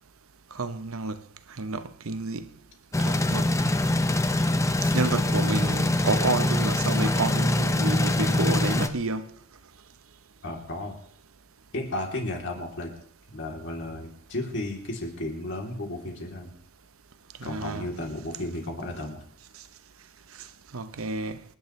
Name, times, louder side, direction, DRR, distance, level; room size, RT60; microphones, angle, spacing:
voice 1, 0.5-1.2 1.6-2.5 3.0-3.5 4.9-9.3 17.4-17.9 20.7-21.4, right 3 dB, 70° right, 0.9 m, -30 dB
sound 1, 2.9-8.9, left 1 dB, 15° left, 0.7 m, -24 dB
voice 2, 10.4-11.0 11.7-12.9 13.3-16.5 17.4-19.2, left 1 dB, 60° left, 3.2 m, -33 dB
27.0 x 10.5 x 3.2 m
head